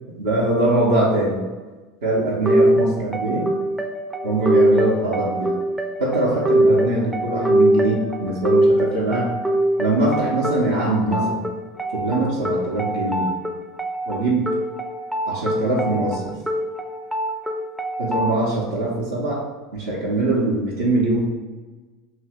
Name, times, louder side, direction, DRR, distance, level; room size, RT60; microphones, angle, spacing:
voice 1, 0.2-1.4 2.0-3.5 4.2-5.5 6.0-9.3 9.8-11.4 11.9-13.3 14.1-14.5 15.3-16.3 18.0-19.4 19.7-21.3, right 2 dB, 70° right, -6 dB, 0.7 m, -22 dB
sound 1, 2.5-18.4, right 1 dB, 5° right, 0.4 m, -23 dB
2.8 x 2.7 x 3.4 m, 1.3 s
figure-of-eight pair, 75°, 0 cm